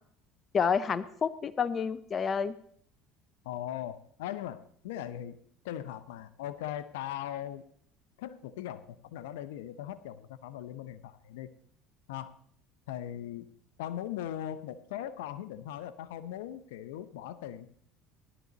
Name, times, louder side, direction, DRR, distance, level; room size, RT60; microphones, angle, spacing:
voice 1, 0.5-2.6, left 6 dB, 35° left, 15 dB, 0.8 m, -29 dB
voice 2, 3.4-5.4 5.6-7.6 8.2-11.5 12.1-12.3 12.9-13.5 13.8-17.7, left 11 dB, 85° left, 14 dB, 0.8 m, -39 dB
17.0 x 12.0 x 4.1 m, 0.63 s
supercardioid pair, 90°, 0 cm